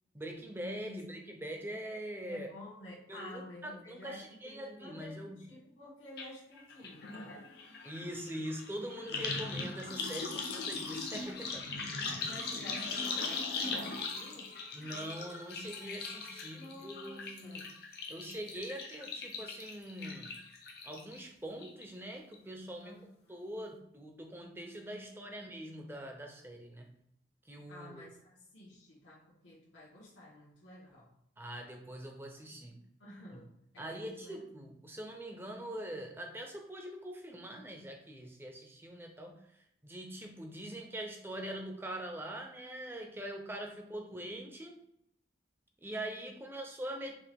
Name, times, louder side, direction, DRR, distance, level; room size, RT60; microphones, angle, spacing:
voice 1, 0.1-2.5 3.1-5.5 7.8-11.7 14.7-17.6 18.1-20.4 20.8-23.0 23.3-27.0 27.5-28.1 31.4-32.8 33.8-39.4 39.8-44.8 45.8-47.2, right 1 dB, 10° right, 3 dB, 0.5 m, -43 dB
voice 2, 0.7-1.5 2.3-7.5 9.0-9.2 12.2-14.6 16.5-17.7 20.0-20.1 22.8-23.4 25.1-25.2 27.7-31.1 33.0-34.4 46.2-46.4, left 1 dB, 90° left, -6 dB, 1.4 m, -51 dB
sound 1, 6.2-6.3 6.6-21.2 21.6-22.1 22.3-22.4, left 4 dB, 55° left, 0.7 m, -40 dB
5.9 x 2.5 x 3.4 m, 0.75 s
head